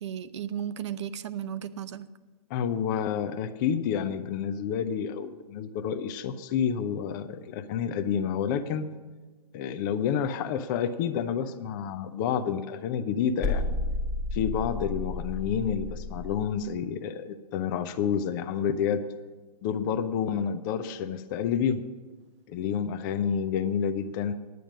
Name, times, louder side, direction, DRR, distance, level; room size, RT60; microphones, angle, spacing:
voice 1, 0.0-2.1, right 9 dB, 45° right, 15 dB, 0.6 m, -34 dB
voice 2, 2.5-8.9 9.5-13.6 14.3-19.0 19.6-21.8 22.5-24.3, left 8 dB, 30° left, 10 dB, 0.6 m, -29 dB
sound 1, 13.4-16.5, left 3 dB, ahead, 1.1 m, -32 dB
10.0 x 9.3 x 6.1 m, 1.3 s
figure-of-eight pair, 125°, 21 cm